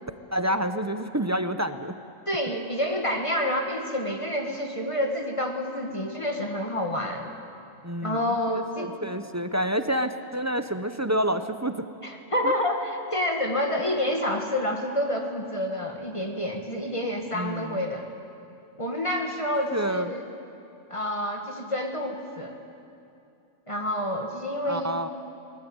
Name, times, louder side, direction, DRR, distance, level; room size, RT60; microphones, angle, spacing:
voice 1, 0.3-1.9 7.8-8.4 8.8-11.8 12.4-12.5 17.3-17.8 19.7-20.1 24.7-25.1, right 1 dB, 20° right, 9 dB, 0.6 m, -28 dB
voice 2, 2.3-7.3 8.0-8.9 12.0-18.1 18.8-20.2 20.9-22.5 23.7-25.1, left 1 dB, 25° left, 2 dB, 1.9 m, -28 dB
21.5 x 20.0 x 9.0 m, 2.7 s
omnidirectional pair, 1.4 m